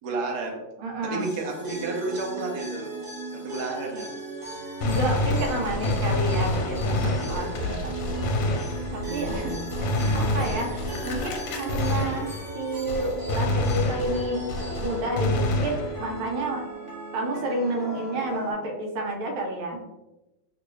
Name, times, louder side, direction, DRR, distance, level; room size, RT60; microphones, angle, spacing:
voice 1, 0.0-0.6 1.0-2.9 3.3-4.1 7.5-7.8 9.3-9.6, right 3 dB, 65° right, 1 dB, 1.1 m, -31 dB
voice 2, 0.8-1.3 4.8-7.9 8.4-8.6 8.9-9.4 10.1-12.3 12.5-14.4 14.8-16.6 17.1-19.8, right 2 dB, 85° right, 1 dB, 1.5 m, -30 dB
sound 1, 1.2-18.5, right 2 dB, 45° right, 0.6 m, -36 dB
Gunshot gunfire, 4.8-12.6 12.9-16.2, left 2 dB, 75° left, 1.2 m, -28 dB
3.0 x 3.0 x 3.0 m, 0.99 s
omnidirectional pair, 2.2 m